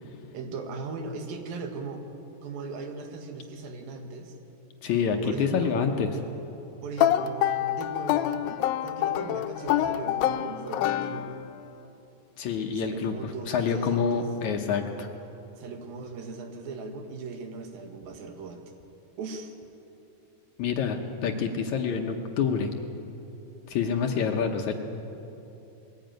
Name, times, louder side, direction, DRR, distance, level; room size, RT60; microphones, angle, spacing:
voice 1, 0.3-2.0 2.4-4.4 5.2-5.8 6.8-11.4 12.7-14.3 15.6-18.6 19.2-19.5, right 4 dB, 80° right, 5 dB, 3.4 m, -38 dB
voice 2, 4.8-6.1 12.4-15.1 20.6-22.7 23.7-24.7, left 6 dB, 70° left, 4 dB, 2.0 m, -27 dB
sound 1, 7.0-11.6, left 11 dB, 85° left, 2.5 m, -26 dB
21.0 x 16.0 x 9.1 m, 2.9 s
omnidirectional pair, 4.1 m